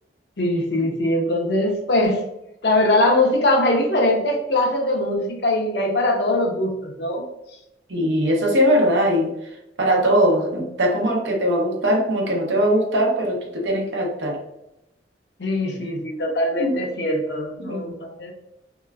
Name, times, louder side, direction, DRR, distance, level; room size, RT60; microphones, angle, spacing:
voice 1, 0.4-2.2 2.6-7.2 15.4-18.3, left 1 dB, 70° left, 1 dB, 0.7 m, -21 dB
voice 2, 7.9-9.3 9.8-14.4 16.6-16.8 17.6-18.0, equal, 85° right, 0 dB, 0.8 m, -20 dB
3.2 x 2.9 x 2.3 m, 0.86 s
head